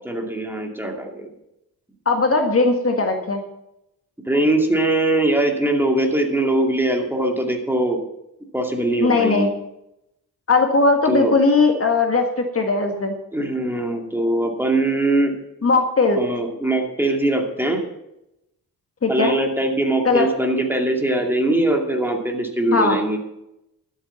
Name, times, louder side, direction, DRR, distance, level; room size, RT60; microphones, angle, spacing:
voice 1, 0.1-1.3 4.3-8.0 8.5-9.5 11.1-11.3 13.3-15.3 16.2-17.8 19.1-23.2, right 1 dB, 5° right, 2 dB, 2.4 m, -21 dB
voice 2, 2.0-3.4 9.0-9.5 10.5-13.2 15.6-16.2 19.0-19.4 20.0-20.3 22.7-23.0, left 3 dB, 40° left, 4 dB, 1.8 m, -18 dB
12.5 x 8.3 x 7.1 m, 0.85 s
cardioid pair, 105°, 36 cm